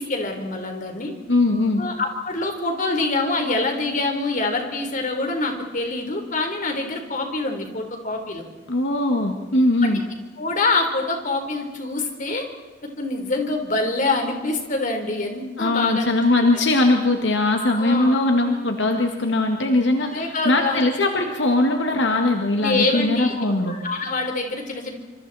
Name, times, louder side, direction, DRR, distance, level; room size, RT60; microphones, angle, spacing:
voice 1, 0.0-1.1 1.8-8.4 9.8-9.9 10.4-12.4 13.0-16.1 17.7-18.2 20.0-20.8 22.6-23.3 23.7-24.9, left 2 dB, 45° left, 4 dB, 3.9 m, -25 dB
voice 2, 1.3-1.8 8.7-10.0 15.6-23.8, left 2 dB, 75° left, 4 dB, 2.0 m, -20 dB
27.0 x 26.5 x 4.3 m, 1.2 s
head